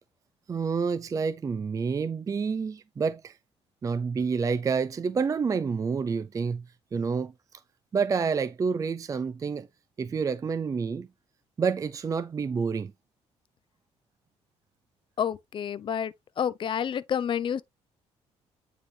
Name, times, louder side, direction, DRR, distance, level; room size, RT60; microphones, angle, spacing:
voice 1, 0.5-3.4 3.8-7.6 7.9-9.7 10.0-11.1 11.6-12.9, right 5 dB, 30° right, 0.4 m, -28 dB
voice 2, 15.2-17.6, left 8 dB, 45° left, 0.6 m, -29 dB
9.3 x 3.8 x 3.2 m
cardioid pair, 100°, 12 cm